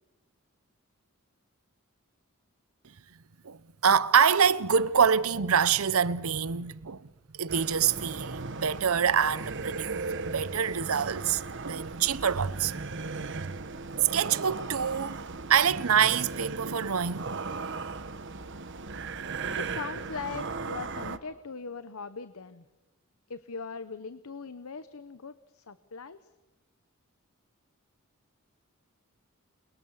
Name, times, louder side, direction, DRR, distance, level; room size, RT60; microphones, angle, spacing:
voice 1, 3.4-7.1 7.3-12.7 14.1-15.2 15.5-17.3, right 7 dB, 75° right, 0.8 m, -26 dB
sound 1, 7.5-21.2, right 4 dB, 55° right, 1.2 m, -37 dB
voice 2, 19.5-22.7 23.3-26.2, left 5 dB, 80° left, 0.9 m, -40 dB
29.0 x 22.0 x 7.2 m
head